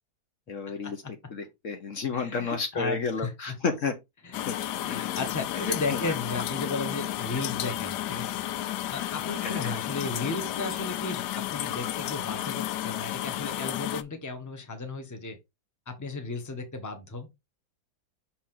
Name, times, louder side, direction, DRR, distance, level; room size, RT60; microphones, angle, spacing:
voice 1, 0.5-1.0 1.3-3.9 4.5-4.6 4.9-5.1 5.5-6.2 9.4-9.7, left 5 dB, 55° left, 1.2 m, -31 dB
voice 2, 2.1-3.3 4.2-4.4 4.8-8.4 8.9-15.4 15.9-17.3, left 3 dB, 15° left, 1.0 m, -35 dB
sound 1, 4.3-14.0, left 13 dB, 85° left, 1.2 m, -32 dB
6.2 x 4.2 x 3.8 m
omnidirectional pair, 1.7 m